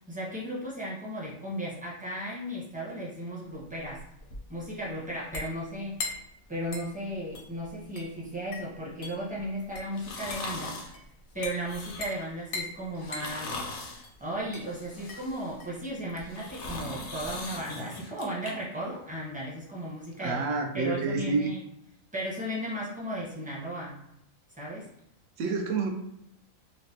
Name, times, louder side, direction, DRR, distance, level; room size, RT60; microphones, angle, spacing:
voice 1, 0.1-4.0 4.5-6.0 6.5-10.8 11.3-13.6 14.2-20.4 20.7-21.6 22.1-24.0 24.6-24.9, right 1 dB, 10° right, -6 dB, 0.6 m, -35 dB
sound 1, 3.5-17.5, left 3 dB, 60° left, 0.6 m, -42 dB
sound 2, 9.9-10.9 11.5-12.3 13.0-14.0 14.6-15.6 16.1-18.5 18.9-19.0, left 3 dB, 90° left, 1.1 m, -40 dB
voice 2, 20.2-21.5 25.4-25.9, right 4 dB, 70° right, 3 dB, 0.9 m, -28 dB
3.2 x 2.0 x 2.8 m, 0.77 s
omnidirectional pair, 1.4 m